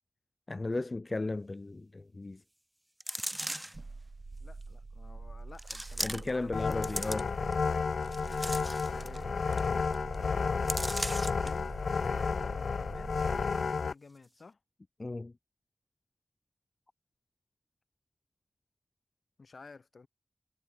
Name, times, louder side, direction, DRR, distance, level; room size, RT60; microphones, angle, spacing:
voice 1, 0.5-2.4 6.0-7.3 15.0-15.3, left 2 dB, 40° left, 3.4 m, -35 dB
sound 1, 3.0-3.8 4.6-4.7 5.6-6.4 6.7-7.5 8.0-9.2 9.5-9.6 9.9-10.1 10.7-11.5 11.9-12.0, right 1 dB, 10° right, 5.3 m, -37 dB
sound 2, 3.7-13.5, right 3 dB, 55° right, 7.3 m, -46 dB
voice 2, 4.4-6.6 7.0-7.2 8.9-10.5 11.0-13.2 13.4-14.6 19.4-20.1, left 4 dB, 65° left, 7.5 m, -53 dB
sound 3, 6.5-13.9, left 5 dB, 80° left, 1.3 m, -32 dB
cardioid pair, 60°, 0 cm